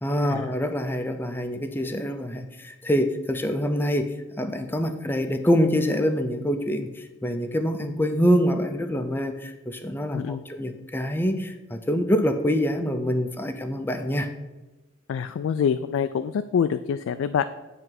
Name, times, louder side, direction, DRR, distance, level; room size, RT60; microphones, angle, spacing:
voice 1, 0.0-6.9 7.2-14.3, equal, 10° left, 7 dB, 0.5 m, -25 dB
voice 2, 10.1-10.4 15.1-17.4, left 7 dB, 85° left, 10 dB, 0.3 m, -26 dB
9.1 x 3.3 x 5.9 m, 1.1 s
head